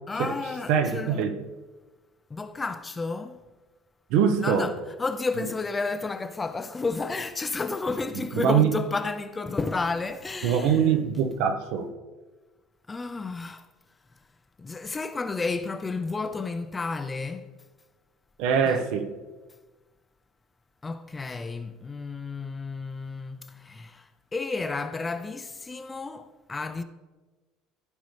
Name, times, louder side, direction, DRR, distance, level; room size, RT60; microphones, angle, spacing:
voice 1, 0.1-1.3 2.3-3.4 4.4-10.8 12.9-13.6 14.6-17.4 18.6-18.8 20.8-24.0 24.3-26.8, left 3 dB, 15° left, 0.4 m, -31 dB
voice 2, 0.7-1.4 4.1-4.7 8.4-8.7 10.4-11.9 18.4-19.1, right 7 dB, 65° right, 0.9 m, -23 dB
14.0 x 5.3 x 3.2 m
cardioid pair, 145°, 0 cm